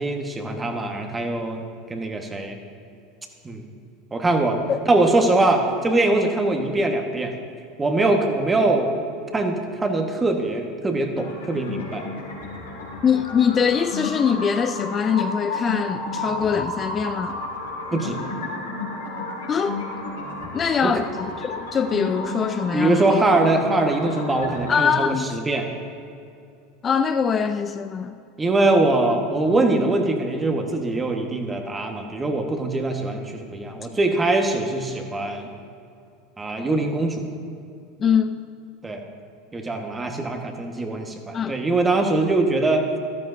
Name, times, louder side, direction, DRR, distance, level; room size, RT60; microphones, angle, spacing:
voice 1, 0.0-1.6 1.9-2.6 3.4-3.7 4.1-4.6 4.9-7.3 7.8-8.9 9.3-12.0 17.9-18.2 20.8-20.9 22.7-25.7 28.4-35.5 36.4-37.2 38.8-39.0 39.5-42.9, right 2 dB, 20° right, 3 dB, 1.5 m, -22 dB
sound 1, 11.1-24.7, left 2 dB, 85° left, 2.5 m, -32 dB
voice 2, 13.0-17.4 19.5-19.8 20.5-23.2 24.7-25.3 26.8-28.1 38.0-38.4 41.3-41.6, left 7 dB, 30° left, 9 dB, 0.4 m, -23 dB
14.0 x 13.0 x 2.7 m, 2.5 s
hypercardioid pair, 80°, 0 cm